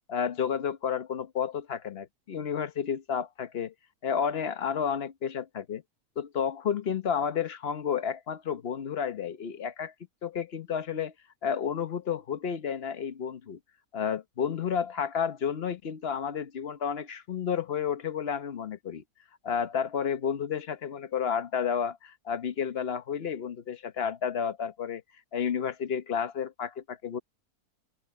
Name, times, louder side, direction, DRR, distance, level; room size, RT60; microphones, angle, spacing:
voice 1, 0.1-3.7 4.0-5.8 6.2-9.9 10.2-11.1 11.4-13.6 13.9-19.0 19.4-25.0 25.3-27.2, left 7 dB, 45° left, 1.0 m, -31 dB
open air
omnidirectional pair, 1.7 m